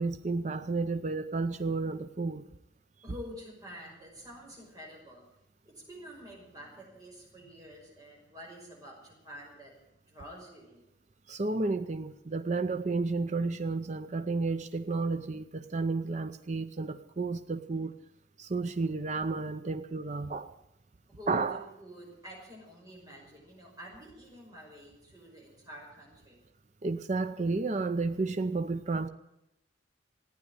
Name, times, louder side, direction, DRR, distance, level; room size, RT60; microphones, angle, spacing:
voice 1, 0.0-2.5 11.3-17.9 18.4-20.5 21.3-21.6 26.8-29.1, right 3 dB, 40° right, 0.6 m, -32 dB
voice 2, 3.0-5.2 5.7-9.7 10.1-10.9 21.1-26.4, equal, 20° right, 5.8 m, -48 dB
15.5 x 9.6 x 9.7 m
head